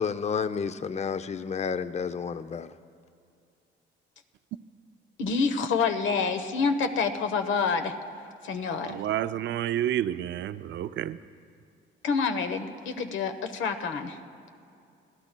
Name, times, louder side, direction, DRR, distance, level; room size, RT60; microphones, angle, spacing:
voice 1, 0.0-2.7, left 6 dB, 35° left, 0.5 m, -30 dB
voice 2, 5.2-8.0 8.4-9.0 12.0-14.2, left 5 dB, 75° left, 1.0 m, -27 dB
voice 3, 8.8-11.2, right 11 dB, 65° right, 0.4 m, -29 dB
25.5 x 16.0 x 2.2 m
cardioid pair, 90°, 20 cm